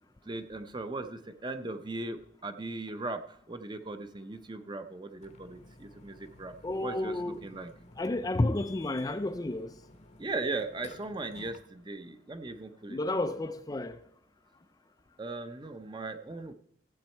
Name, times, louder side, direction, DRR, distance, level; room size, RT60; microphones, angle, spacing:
voice 1, 0.3-6.5 6.8-7.7 10.2-13.2 15.2-16.5, right 3 dB, 25° right, 0.7 m, -38 dB
Burping eructation, 5.2-11.6, left 2 dB, 40° left, 0.8 m, -52 dB
voice 2, 6.6-7.4 8.0-9.7 12.9-14.0, left 2 dB, 20° left, 0.4 m, -31 dB
15.0 x 8.0 x 4.4 m
head